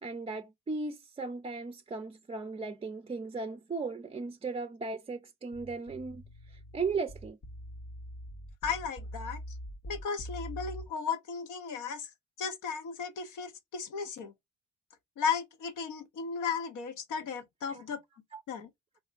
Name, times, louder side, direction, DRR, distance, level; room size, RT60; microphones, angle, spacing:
voice 1, 0.0-7.4 17.7-17.8 18.3-18.4, right 4 dB, 20° right, 0.4 m, -37 dB
sound 1, 5.5-10.9, equal, 50° left, 0.9 m, -43 dB
voice 2, 8.6-9.4 9.9-12.1 12.4-14.3 15.2-18.0 18.5-18.7, left 6 dB, 85° left, 0.9 m, -35 dB
4.0 x 2.5 x 2.5 m
cardioid pair, 90°, 30 cm